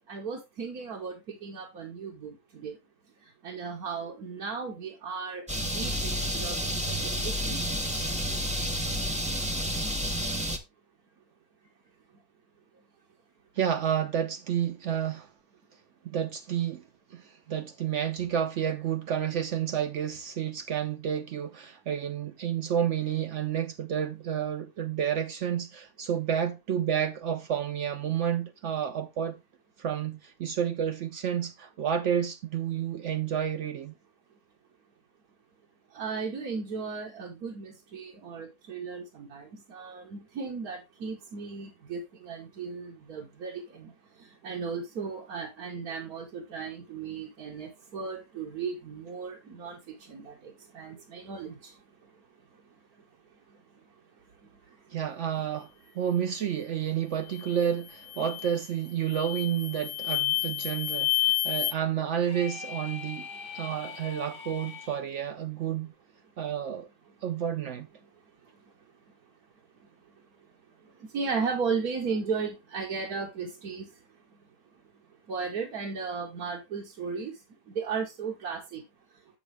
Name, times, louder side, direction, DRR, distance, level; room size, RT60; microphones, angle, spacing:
voice 1, 0.1-2.8 3.4-6.6 6.9-7.6 35.9-43.9 44.4-49.8 50.1-51.7 58.2-58.3 71.1-73.9 75.3-77.3 77.7-78.8, right 5 dB, 90° right, 1.6 m, -35 dB
sound 1, 5.5-10.6, equal, 5° right, 0.7 m, -30 dB
voice 2, 13.6-15.3 16.0-16.8 17.1-29.4 29.8-33.9 54.9-55.7 55.9-63.3 63.5-65.9 66.4-66.9 67.2-67.9, right 9 dB, 65° right, 0.8 m, -30 dB
sound 2, 57.3-57.6 58.1-58.6 59.1-61.7, left 16 dB, 75° left, 1.0 m, -29 dB
sound 3, 62.2-65.0, left 6 dB, 40° left, 1.4 m, -42 dB
7.1 x 7.0 x 3.2 m
omnidirectional pair, 1.5 m